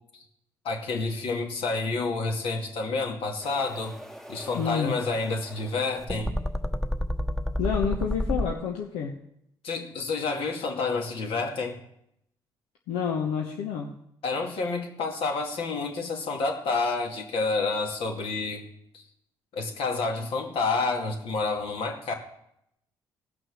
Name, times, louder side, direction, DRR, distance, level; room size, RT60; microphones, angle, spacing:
voice 1, 0.6-3.9 4.3-6.4 9.6-11.8 14.2-18.6 18.9-19.0 19.5-22.1, left 3 dB, 70° left, 2 dB, 2.4 m, -29 dB
sound 1, 3.4-8.5, left 1 dB, 5° left, 1.0 m, -31 dB
voice 2, 4.5-4.9 7.6-9.2 12.9-13.9, left 7 dB, 90° left, 0 dB, 1.2 m, -29 dB
17.0 x 6.2 x 6.4 m, 0.77 s
supercardioid pair, 70°, 10 cm